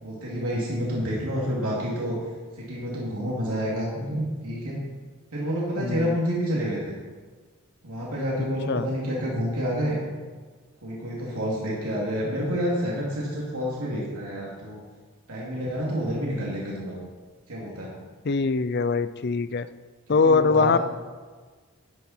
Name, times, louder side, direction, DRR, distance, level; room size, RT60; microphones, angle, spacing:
voice 1, 0.0-2.2 2.6-4.8 5.3-6.9 7.8-10.0 10.8-14.8 15.3-17.0 17.5-17.9 20.2-20.8, equal, 85° right, -5 dB, 2.8 m, -29 dB
voice 2, 5.8-6.2 8.7-8.9 18.2-19.7 20.1-20.8, left 4 dB, 50° left, 13 dB, 0.5 m, -22 dB
13.0 x 9.5 x 4.5 m, 1.5 s
head